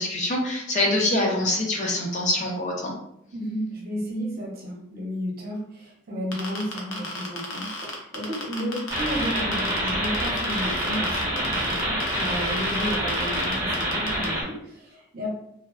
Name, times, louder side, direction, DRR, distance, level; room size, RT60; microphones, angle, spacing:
voice 1, 0.0-3.0, left 1 dB, 40° left, 0 dB, 0.5 m, -25 dB
voice 2, 3.3-15.3, equal, 50° right, -3 dB, 0.8 m, -32 dB
sound 1, 6.3-14.3, left 3 dB, 85° left, 0.7 m, -34 dB
sound 2, 8.9-14.4, equal, 20° right, 1.2 m, -27 dB
3.3 x 2.3 x 2.3 m, 0.76 s
head